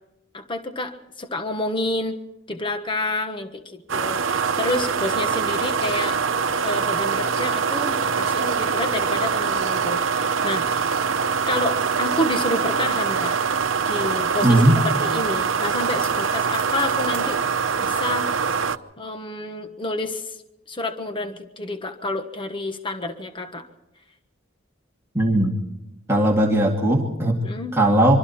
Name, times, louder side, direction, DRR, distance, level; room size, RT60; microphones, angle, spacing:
voice 1, 0.3-2.2 2.5-6.2 6.6-10.9 11.5-13.4 13.9-17.4 17.8-18.3 19.0-20.4 20.7-23.6 27.4-27.7, left 1 dB, 25° left, 6 dB, 1.3 m, -29 dB
sound 1, 3.9-18.8, right 6 dB, 75° right, 0.9 m, -23 dB
voice 2, 14.4-14.8 25.1-25.5 26.1-27.4 27.7-28.2, right 1 dB, 15° right, -2 dB, 2.2 m, -18 dB
25.0 x 25.0 x 4.4 m, 0.89 s
head